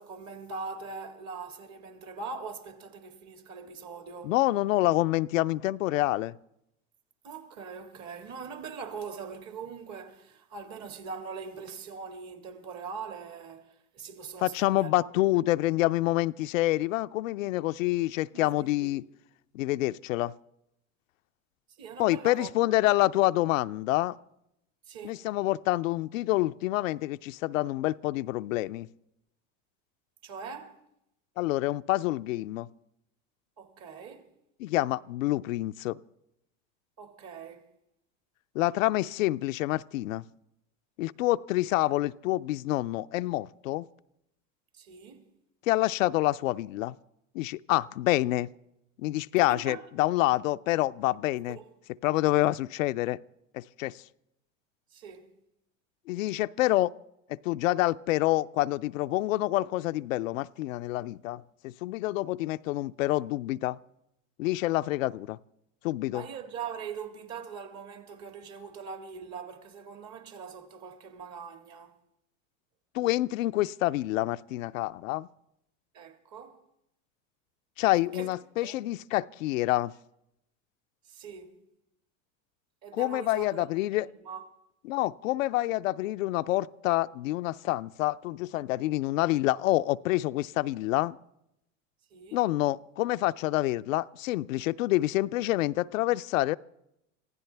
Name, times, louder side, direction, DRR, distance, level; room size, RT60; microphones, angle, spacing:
voice 1, 0.0-4.3 7.2-15.4 18.3-18.9 21.8-22.8 24.9-25.3 30.2-30.8 33.6-34.3 37.0-37.7 44.7-45.3 49.3-49.8 51.2-51.7 54.9-55.4 66.1-72.0 75.9-76.6 77.9-78.3 78.6-79.0 81.1-81.6 82.8-84.5 92.1-92.4, right 5 dB, 45° right, 2.0 m, -42 dB
voice 2, 4.2-6.4 14.4-19.0 19.5-20.3 22.0-24.2 25.0-28.9 31.4-32.7 34.6-36.0 38.5-40.2 41.0-43.9 45.7-47.0 47.3-48.5 49.0-51.6 52.0-53.2 53.5-54.0 56.1-56.9 57.3-63.8 64.4-65.4 65.8-66.2 72.9-75.3 77.8-79.9 82.9-84.1 84.9-91.2 92.3-96.6, left 17 dB, 85° left, 0.5 m, -27 dB
26.5 x 15.5 x 3.4 m
hypercardioid pair, 100°, 38 cm